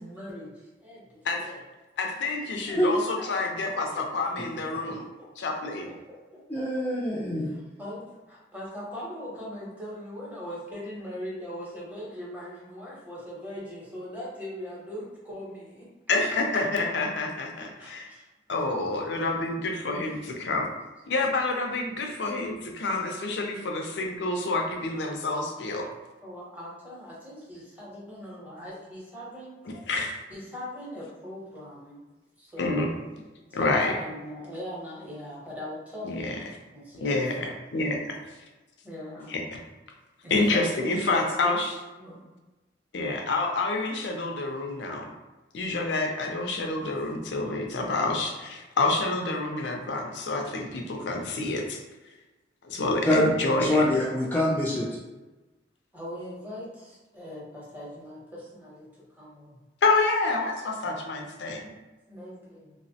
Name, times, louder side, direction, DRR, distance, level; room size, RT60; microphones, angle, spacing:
voice 1, 0.0-1.6 3.2-3.3 4.8-5.3 6.3-6.4 7.3-15.9 17.8-18.2 26.2-29.6 30.3-32.0 32.4-32.9 33.5-36.4 36.7-37.5 38.8-39.3 40.2-41.6 42.0-42.3 55.9-59.6 61.6-61.7 62.1-62.7, equal, 10° right, -6 dB, 0.7 m, -40 dB
voice 2, 2.0-5.0 5.4-5.9 16.1-18.1 18.5-20.7 21.1-25.9 29.7-30.2 32.6-32.9 33.5-33.9 36.0-36.4 37.0-38.2 39.3-39.6 40.3-41.7 42.9-45.1 45.5-51.8 52.6-54.0 59.8-61.6, left 3 dB, 75° left, 2 dB, 0.4 m, -28 dB
voice 3, 6.5-7.6 53.0-53.2 53.6-54.9, left 1 dB, 10° left, -6 dB, 0.3 m, -25 dB
2.8 x 2.0 x 2.7 m, 1.1 s
head